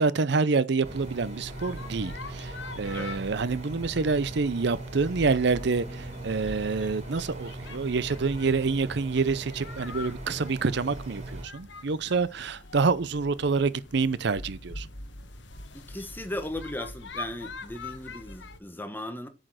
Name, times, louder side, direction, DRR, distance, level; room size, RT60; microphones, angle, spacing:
voice 1, 0.0-14.9, right 4 dB, 60° right, 0.6 m, -27 dB
sound 1, 0.8-11.4, right 2 dB, 35° right, 4.1 m, -39 dB
sound 2, 1.0-18.6, left 3 dB, 65° left, 1.3 m, -45 dB
sound 3, 5.5-10.4 10.8-10.9, equal, 20° right, 1.9 m, -54 dB
voice 2, 15.7-19.3, left 1 dB, 10° left, 1.3 m, -37 dB
9.0 x 6.4 x 6.3 m
head